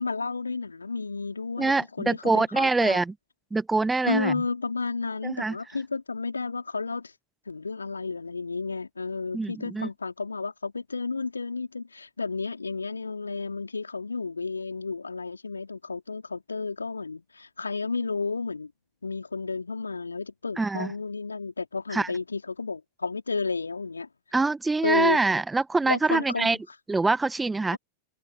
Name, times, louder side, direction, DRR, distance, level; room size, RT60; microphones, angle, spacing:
voice 1, 0.0-3.0 4.1-7.1 7.5-18.7 19.0-24.1 24.8-25.2 25.9-26.5, left 4 dB, 80° left, 4.0 m, -32 dB
voice 2, 1.6-3.1 3.5-4.3 5.2-5.5 9.3-9.9 20.6-20.9 21.9-22.1 24.3-26.6 26.9-27.8, right 3 dB, 10° right, 1.5 m, -24 dB
figure-of-eight pair, 90°, 0 cm